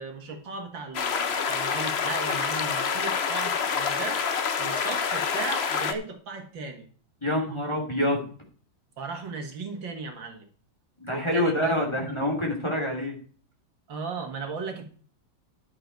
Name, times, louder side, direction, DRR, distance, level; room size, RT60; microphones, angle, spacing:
voice 1, 0.0-4.3 4.6-6.9 9.0-10.5 11.1-11.9 13.9-14.9, right 4 dB, 70° right, 4 dB, 2.4 m, -36 dB
sound 1, 0.9-5.9, left 6 dB, 45° left, 0.9 m, -27 dB
voice 2, 7.2-8.3 11.0-13.2, left 1 dB, 15° left, 0 dB, 3.1 m, -26 dB
10.5 x 7.8 x 4.6 m, 0.43 s
omnidirectional pair, 2.1 m